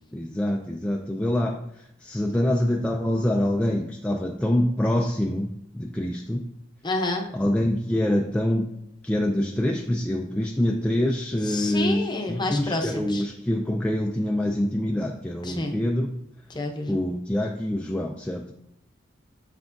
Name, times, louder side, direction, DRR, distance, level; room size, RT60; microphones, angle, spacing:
voice 1, 0.1-6.5 7.3-8.7 9.0-16.1 16.9-18.5, left 1 dB, 5° left, 1 dB, 0.3 m, -25 dB
voice 2, 6.8-7.3 11.4-13.3 15.4-15.8 16.5-17.0, left 2 dB, 25° left, 3 dB, 0.7 m, -29 dB
7.1 x 5.8 x 2.6 m, 0.75 s
head